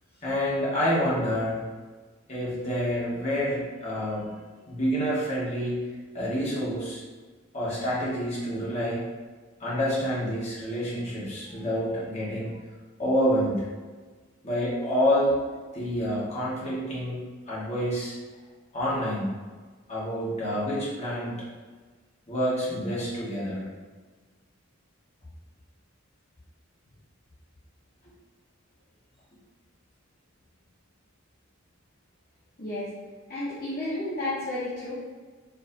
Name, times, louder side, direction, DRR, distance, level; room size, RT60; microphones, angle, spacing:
voice 1, 0.2-1.6 2.3-4.3 4.7-5.8 6.1-7.0 7.5-9.0 9.6-12.5 13.0-13.6 14.4-15.3 15.7-17.2 17.5-18.1 18.7-19.3 19.9-21.4 22.3-23.7, equal, 35° left, -8 dB, 1.5 m, -28 dB
voice 2, 33.3-34.9, left 1 dB, 50° left, -10 dB, 1.0 m, -32 dB
4.7 x 3.5 x 2.7 m, 1.4 s
head